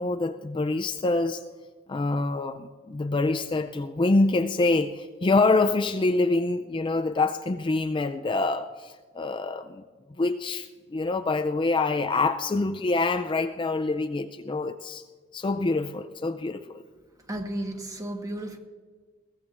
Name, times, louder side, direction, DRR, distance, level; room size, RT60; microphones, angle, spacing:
voice 1, 0.0-1.4 1.9-9.8 10.2-15.0 15.3-16.8, left 3 dB, 25° left, 8 dB, 0.4 m, -26 dB
voice 2, 17.3-18.6, right 1 dB, 20° right, 4 dB, 1.3 m, -33 dB
21.5 x 16.5 x 2.5 m, 1.5 s
head